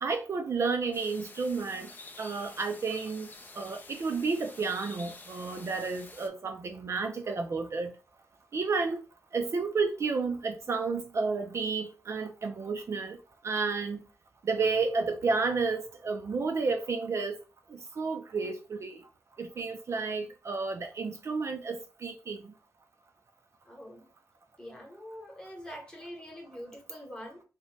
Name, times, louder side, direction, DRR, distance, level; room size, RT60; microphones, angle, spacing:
voice 1, 0.0-1.9 2.2-7.9 8.5-9.0 9.3-13.2 13.4-14.0 14.4-17.4 17.7-19.0 19.4-22.5, right 4 dB, 50° right, 0.3 m, -31 dB
sound 1, 0.9-6.3, left 3 dB, 30° left, 0.4 m, -49 dB
voice 2, 23.7-24.1 24.6-27.4, equal, 15° left, 0.9 m, -44 dB
2.6 x 2.1 x 3.1 m
wide cardioid pair, 135°, 6 cm